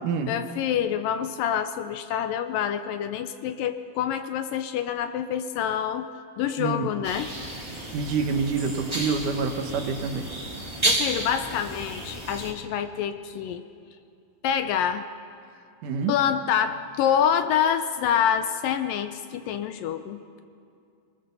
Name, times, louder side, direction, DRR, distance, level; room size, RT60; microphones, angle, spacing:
voice 1, 0.3-6.1 6.4-7.3 10.8-13.6 14.4-15.0 16.1-20.4, left 9 dB, 75° left, 9 dB, 2.2 m, -26 dB
voice 2, 6.6-6.9 7.9-10.2 15.8-16.2, right 5 dB, 70° right, 6 dB, 2.4 m, -27 dB
sound 1, 7.0-12.5, right 1 dB, 10° right, 1.9 m, -31 dB
24.0 x 20.5 x 6.9 m, 2.4 s
omnidirectional pair, 4.3 m